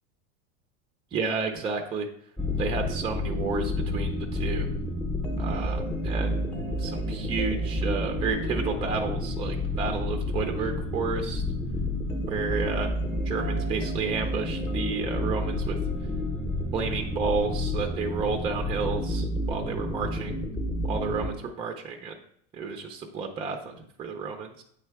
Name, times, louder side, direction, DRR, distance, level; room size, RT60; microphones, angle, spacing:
voice 1, 1.1-2.1 2.6-4.7 5.4-6.4 6.8-11.4 12.3-12.9 13.3-15.8 16.7-20.4 20.9-22.1 22.5-24.6, right 5 dB, 15° right, 4 dB, 0.5 m, -31 dB
sound 1, 2.4-21.3, left 1 dB, 5° left, 0.8 m, -30 dB
8.8 x 3.3 x 4.6 m, 0.68 s
supercardioid pair, 155°, 34 cm